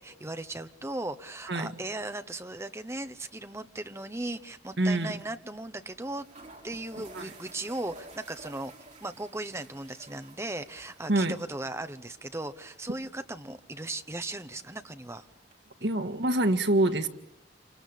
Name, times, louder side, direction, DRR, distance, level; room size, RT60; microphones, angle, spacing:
voice 1, 0.0-6.3 6.6-8.7 9.0-15.3, right 2 dB, 15° right, 9 dB, 1.0 m, -37 dB
sound 1, 4.1-4.4 4.6-4.7 5.8-5.9 6.2-15.6, right 3 dB, 40° right, 4.4 m, -53 dB
voice 2, 4.8-5.1 7.0-7.3 11.1-11.3 15.8-17.1, right 1 dB, 85° right, 8 dB, 1.8 m, -26 dB
28.0 x 25.0 x 8.5 m, 0.83 s
head